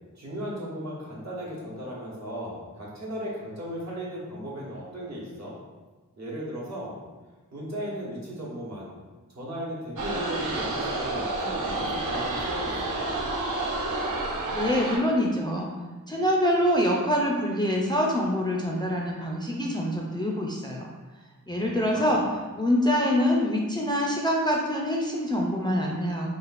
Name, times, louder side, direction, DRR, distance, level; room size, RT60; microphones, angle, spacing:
voice 1, 0.1-5.6 6.2-7.0 7.5-8.9 9.3-13.1 21.5-22.2, equal, 55° right, -6 dB, 1.2 m, -36 dB
sound 1, 10.0-15.0, right 2 dB, 70° right, 0.6 m, -29 dB
voice 2, 14.5-15.7 16.1-20.9 21.5-22.2 22.5-26.4, equal, 15° left, -2 dB, 0.4 m, -25 dB
3.2 x 2.4 x 4.0 m, 1.3 s
wide cardioid pair, 85°, 33 cm